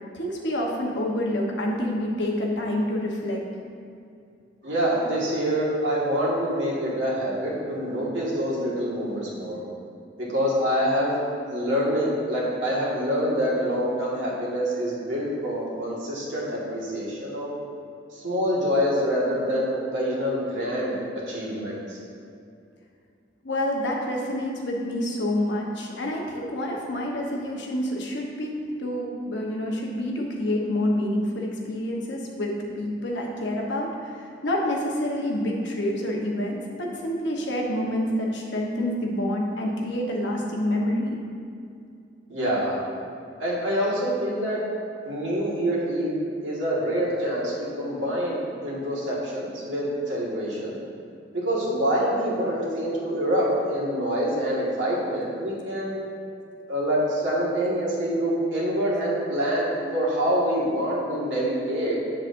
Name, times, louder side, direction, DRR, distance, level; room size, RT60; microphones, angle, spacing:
voice 1, 0.1-3.4 23.4-28.5 28.8-41.2, left 1 dB, 70° left, -1 dB, 1.0 m, -27 dB
voice 2, 4.6-9.6 10.2-11.2 11.5-17.5 18.1-21.0 21.3-22.0 42.3-42.8 43.4-44.6 45.0-50.7 51.3-56.0 56.7-62.0, equal, 90° right, -5 dB, 1.7 m, -26 dB
7.6 x 7.2 x 2.6 m, 2.4 s
head